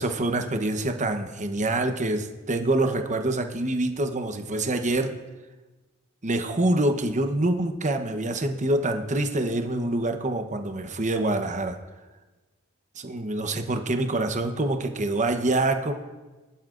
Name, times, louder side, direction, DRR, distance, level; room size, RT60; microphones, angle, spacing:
voice 1, 0.0-5.1 6.2-11.8 13.0-15.9, right 2 dB, 35° right, 6 dB, 0.9 m, -26 dB
20.0 x 11.5 x 2.5 m, 1.2 s
head